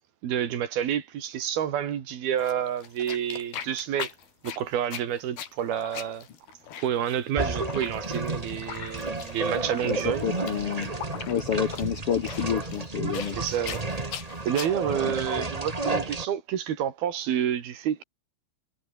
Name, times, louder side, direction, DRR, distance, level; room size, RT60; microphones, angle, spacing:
voice 1, 0.2-4.1 4.4-6.3 6.8-10.2 13.4-13.8 14.4-18.0, right 9 dB, 75° right, 4.2 m, -29 dB
sound 1, 2.4-14.7, left 9 dB, 80° left, 4.4 m, -40 dB
sound 2, 7.4-16.3, right 2 dB, 55° right, 0.4 m, -32 dB
voice 2, 9.8-10.9 11.2-13.4 15.0-15.3, left 8 dB, 60° left, 1.6 m, -29 dB
omnidirectional pair, 4.4 m